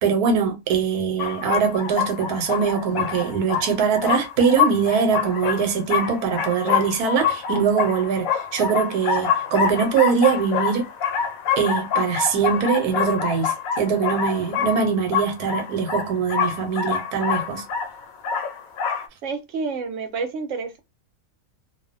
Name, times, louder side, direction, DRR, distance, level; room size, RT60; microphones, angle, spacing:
voice 1, 0.0-10.9 11.6-17.6, right 6 dB, 90° right, 1.2 m, -22 dB
sound 1, 1.2-19.1, left 7 dB, 75° left, 1.0 m, -26 dB
voice 2, 19.2-20.8, right 4 dB, 65° right, 0.9 m, -29 dB
2.6 x 2.1 x 2.4 m
omnidirectional pair, 1.6 m